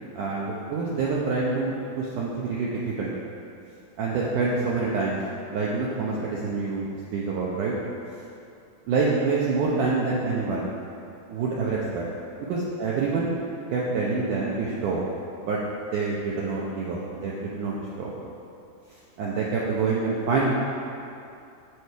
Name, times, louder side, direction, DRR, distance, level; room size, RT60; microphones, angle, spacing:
voice 1, 0.1-3.1 4.0-5.2 5.5-7.7 8.9-10.7 11.3-12.1 12.5-13.4 13.7-15.0 15.4-15.6 15.9-18.1 18.9-20.5, right 4 dB, 80° right, -5 dB, 1.8 m, -26 dB
9.7 x 8.2 x 4.6 m, 2.6 s
omnidirectional pair, 4.9 m